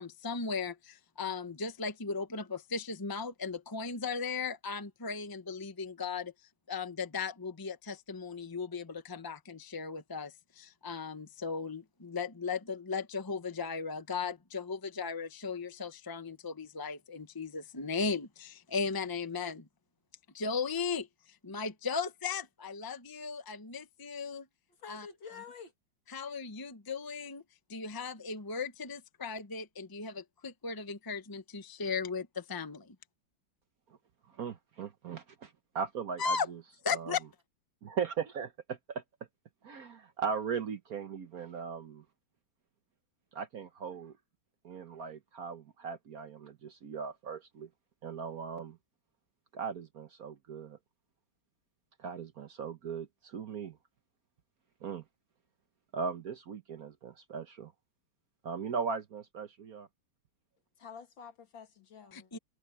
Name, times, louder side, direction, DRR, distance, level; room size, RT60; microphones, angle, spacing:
voice 1, 0.0-6.3 6.7-19.7 20.3-21.1 21.4-24.5 24.9-25.1 26.1-27.4 27.7-32.9 36.2-36.5 36.8-37.2 62.1-62.4, left 5 dB, 30° left, 0.4 m, -37 dB
voice 2, 24.8-25.7 60.8-62.3, left 6 dB, 65° left, 2.9 m, -48 dB
voice 3, 34.3-36.6 36.9-37.2 37.8-39.0 39.6-42.0 43.3-44.1 44.6-47.7 48.0-48.8 49.5-50.8 52.0-53.8 54.8-55.0 55.9-57.7 58.4-59.9, right 6 dB, 55° right, 1.2 m, -38 dB
omnidirectional pair, 2.3 m